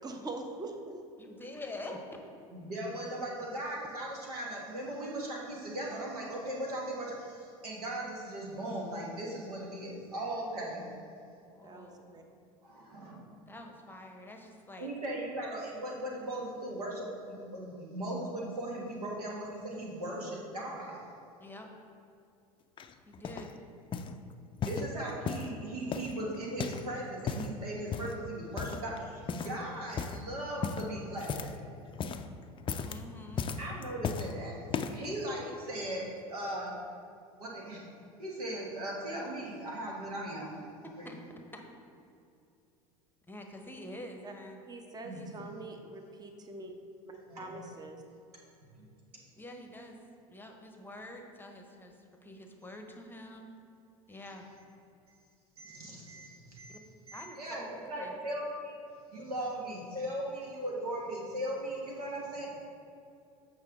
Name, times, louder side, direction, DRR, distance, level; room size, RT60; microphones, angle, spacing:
voice 1, 0.0-1.0 11.6-12.2 44.2-44.3 44.7-46.7 47.0-48.0, right 2 dB, 20° right, 4 dB, 0.8 m, -43 dB
voice 2, 1.2-2.0 11.5-12.2 13.5-14.9 21.4-21.7 23.1-23.5 32.8-33.5 40.8-41.2 41.5-41.6 43.3-44.6 45.1-45.3 49.4-50.0 50.3-53.5 54.1-54.5 56.7-56.8 57.1-58.1, left 1 dB, 10° left, 3 dB, 0.9 m, -46 dB
voice 3, 2.5-10.8 12.6-13.2 14.8-21.1 24.6-31.5 33.6-34.6 34.9-36.8 37.4-37.8 38.2-40.6 41.0-41.1 45.0-45.2 47.3-47.6 48.8-48.9 55.6-56.8 57.1-58.7 59.1-62.5, right 1 dB, 85° right, -2 dB, 1.5 m, -38 dB
sound 1, 22.8-23.5 23.9-24.2 24.6-25.5 25.9-26.9 27.1-27.5 27.9-28.2 28.6-29.0 29.3-29.6 29.9-30.2 30.6-31.6 31.9-32.3 32.6-33.0 33.4-34.3 34.7-35.1 35.7-35.8, left 6 dB, 25° left, 0.4 m, -36 dB
7.7 x 5.4 x 3.6 m, 2.6 s
hypercardioid pair, 80°, 19 cm